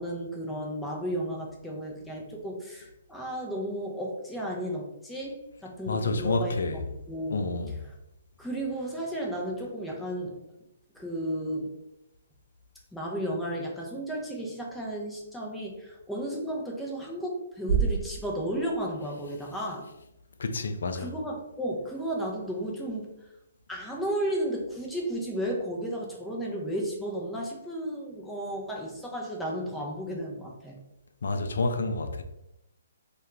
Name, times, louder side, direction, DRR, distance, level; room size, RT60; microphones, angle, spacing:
voice 1, 0.0-7.8 8.4-10.3 10.9-11.7 12.9-19.9 20.9-23.1 23.7-30.8, right 1 dB, 5° left, 0.5 m, -33 dB
voice 2, 5.9-6.8 7.3-7.8 20.4-21.1 31.2-32.2, left 3 dB, 70° left, 0.3 m, -29 dB
sound 1, 17.7-19.8, right 6 dB, 35° right, 0.7 m, -30 dB
2.2 x 2.2 x 2.9 m
hypercardioid pair, 135°, 0 cm